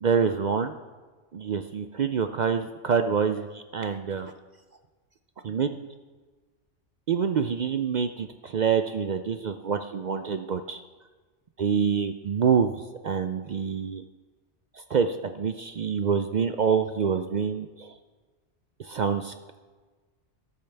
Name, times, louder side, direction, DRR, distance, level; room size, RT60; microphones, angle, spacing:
voice 1, 0.0-0.7 1.3-4.3 5.4-5.8 7.1-10.8 11.6-12.7 13.0-14.0 14.9-17.9 18.8-19.3, right 6 dB, 60° right, 8 dB, 0.4 m, -26 dB
13.5 x 12.5 x 3.4 m, 1.3 s
omnidirectional pair, 1.2 m